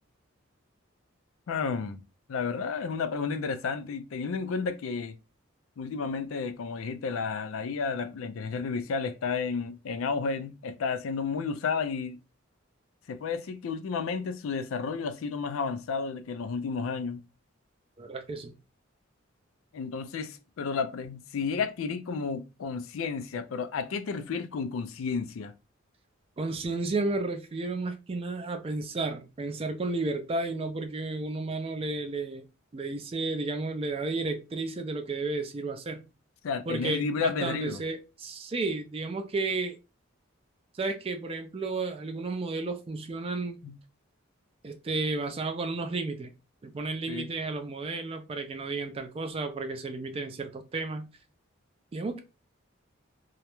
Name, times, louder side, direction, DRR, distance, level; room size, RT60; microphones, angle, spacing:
voice 1, 1.5-2.0 2.3-5.1 5.8-12.2 13.1-17.2 19.7-25.5 36.4-37.8 43.6-43.7 47.1-47.3, left 5 dB, 75° left, 0.4 m, -32 dB
voice 2, 18.0-18.5 26.4-32.5 32.7-36.1 36.7-39.8 40.7-43.6 44.6-46.3 46.6-51.1 51.9-52.2, right 3 dB, 30° right, 0.3 m, -32 dB
2.3 x 2.0 x 2.9 m
head